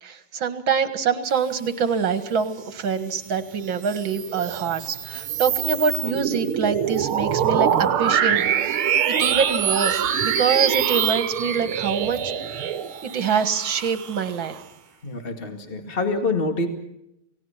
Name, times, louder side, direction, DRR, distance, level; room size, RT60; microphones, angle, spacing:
voice 1, 0.0-8.4 9.1-12.7 13.0-14.6, right 6 dB, 65° right, 10 dB, 2.5 m, -25 dB
sound 1, 3.7-14.6, right 8 dB, 85° right, 2.1 m, -24 dB
voice 2, 15.0-16.7, left 3 dB, 25° left, 6 dB, 2.4 m, -26 dB
29.5 x 18.0 x 5.9 m, 0.82 s
omnidirectional pair, 2.3 m